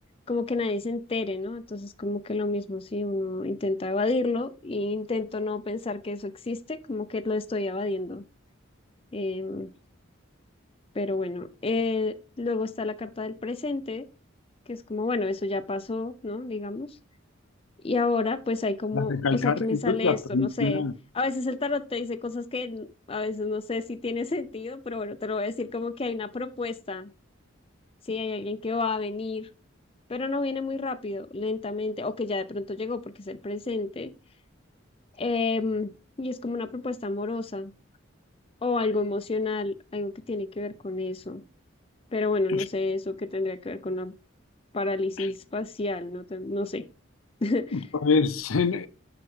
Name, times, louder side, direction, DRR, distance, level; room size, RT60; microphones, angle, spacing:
voice 1, 0.3-8.2 9.1-9.7 10.9-14.0 14.7-16.9 17.8-20.8 21.1-27.1 28.1-29.5 30.1-34.1 35.2-35.9 36.2-37.7 38.6-41.4 42.1-44.1 44.7-46.9 47.4-47.9, left 3 dB, 25° left, 0.5 m, -30 dB
voice 2, 18.9-20.9 42.5-42.6 45.2-45.3 47.7-48.9, left 4 dB, 85° left, 0.6 m, -25 dB
6.7 x 5.8 x 5.4 m
head